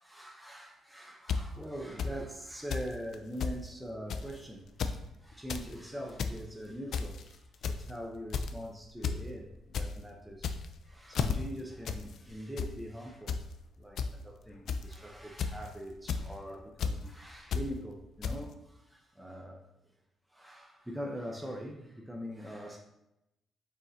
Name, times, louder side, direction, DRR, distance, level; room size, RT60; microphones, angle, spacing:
voice 1, 0.0-4.8 5.2-10.5 10.8-13.4 13.8-19.7 20.3-22.8, equal, 5° right, 0.6 m, -43 dB
sound 1, 1.3-1.4 2.0-2.1 2.7-2.9 3.1-3.2 3.4-3.6 4.1-4.3 4.7-5.0 5.3-5.6 6.0-6.4 6.9-7.2 7.6-7.9 8.3-8.6 9.0-9.2 9.5-9.9 10.3-10.8 11.1-11.3 11.8-12.0 12.3-12.7 13.3-13.4 14.0-14.1 14.7-14.9 15.4-15.7 16.1-16.2 16.8-16.9 17.5-17.6 18.2-18.3, left 6 dB, 65° left, 0.3 m, -32 dB
4.7 x 3.1 x 2.7 m
cardioid pair, 90°, 0 cm